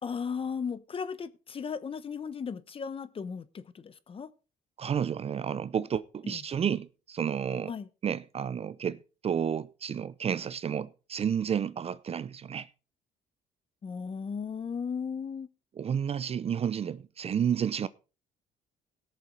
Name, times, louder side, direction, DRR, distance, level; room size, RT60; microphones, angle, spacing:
voice 1, 0.0-4.3 6.2-6.4 7.7-7.9 13.8-15.5, left 6 dB, 35° left, 0.9 m, -36 dB
voice 2, 4.8-7.7 8.0-12.7 15.8-17.9, right 8 dB, 35° right, 0.6 m, -31 dB
17.5 x 6.9 x 4.6 m
cardioid pair, 110°, 17 cm